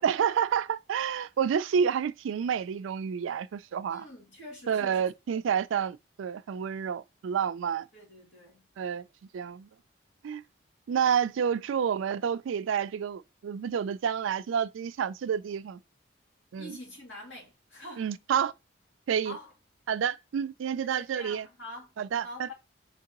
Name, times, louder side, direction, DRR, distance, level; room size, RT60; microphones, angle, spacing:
voice 1, 0.0-4.0 4.7-7.9 8.8-9.0 9.3-9.7 10.2-10.4 10.9-15.8 16.5-16.8 18.0-18.5 19.1-19.4 19.9-21.5 22.0-22.5, right 7 dB, 90° right, 0.3 m, -29 dB
voice 2, 3.9-5.1 7.9-8.7 16.6-18.1 19.2-19.5 20.9-21.9 22.2-22.5, left 1 dB, 75° left, 2.2 m, -45 dB
4.4 x 3.7 x 2.9 m
head